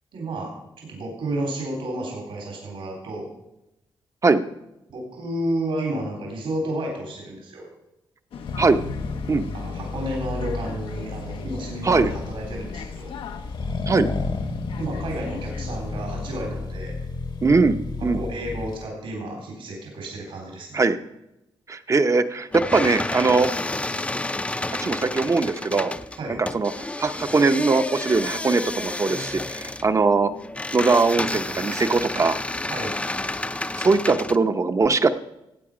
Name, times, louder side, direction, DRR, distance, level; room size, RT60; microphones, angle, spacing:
voice 1, 0.1-0.5 0.8-3.3 4.9-7.7 9.5-13.1 14.8-17.0 18.0-20.8 26.2-26.4 32.7-32.9, right 1 dB, 75° right, -1 dB, 3.8 m, -31 dB
sound 1, 8.3-16.5, left 7 dB, 80° left, 0.8 m, -40 dB
Accelerating revving vroom, 8.5-18.8, left 3 dB, 55° left, 1.2 m, -32 dB
voice 2, 17.4-17.8 18.0-18.2 20.7-21.0 21.7-23.5 24.7-25.9 26.4-26.7 27.0-30.3 30.7-32.4 33.7-35.1, right 4 dB, 35° right, 9 dB, 0.8 m, -20 dB
sound 2, 22.5-34.4, left 2 dB, 15° left, 0.6 m, -30 dB
16.0 x 8.5 x 5.1 m, 0.89 s
cardioid pair, 85°, 9 cm